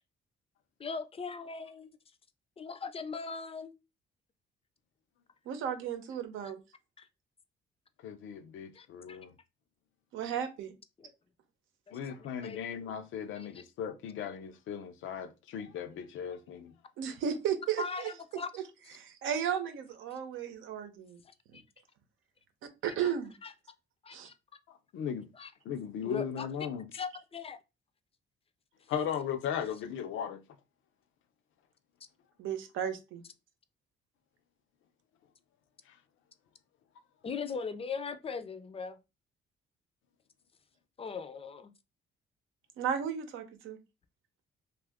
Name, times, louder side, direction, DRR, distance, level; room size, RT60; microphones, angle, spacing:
voice 1, 0.8-1.9 2.6-3.7 8.8-9.2 11.0-11.1 12.4-12.6 13.4-13.6 17.8-18.5 21.5-21.6 24.1-24.3 25.4-25.5 26.0-26.5 26.9-27.6 37.2-39.0 41.0-41.7, left 5 dB, 30° left, 0.4 m, -39 dB
voice 2, 5.5-6.6 10.1-10.7 17.0-18.1 18.5-18.6 18.9-21.2 22.8-23.3 24.1-24.3 32.4-33.2 42.8-43.8, right 8 dB, 85° right, 0.7 m, -34 dB
voice 3, 8.0-9.3 11.9-16.7 24.7-25.3 25.7-26.9 28.9-30.4, left 8 dB, 80° left, 0.5 m, -37 dB
2.6 x 2.4 x 3.4 m
cardioid pair, 90°, 20 cm